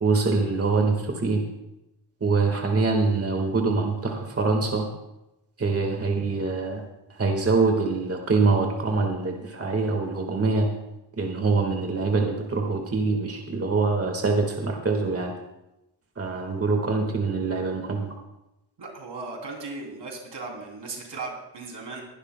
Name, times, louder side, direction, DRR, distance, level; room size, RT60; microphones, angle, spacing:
voice 1, 0.0-1.4 2.2-4.9 5.6-6.8 7.1-10.7 11.2-15.3 16.2-18.1, right 3 dB, 35° right, 2 dB, 1.6 m, -24 dB
voice 2, 18.8-22.1, right 3 dB, 80° right, 0 dB, 3.1 m, -37 dB
21.0 x 11.5 x 2.2 m, 0.93 s
wide cardioid pair, 100°, 42 cm